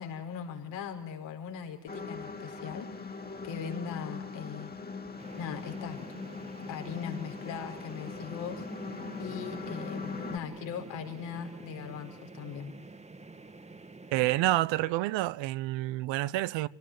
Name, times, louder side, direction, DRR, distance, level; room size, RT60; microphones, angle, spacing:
voice 1, 0.0-3.2 3.4-4.7 5.4-6.0 6.7-8.6 9.2-12.7, left 7 dB, 90° left, 5.0 m, -39 dB
sound 1, 1.9-10.4, left 4 dB, 20° left, 2.3 m, -41 dB
sound 2, 5.2-14.6, right 3 dB, 15° right, 1.5 m, -47 dB
voice 2, 14.1-16.7, right 16 dB, 90° right, 1.0 m, -28 dB
27.0 x 18.5 x 9.5 m
cardioid pair, 90°, 43 cm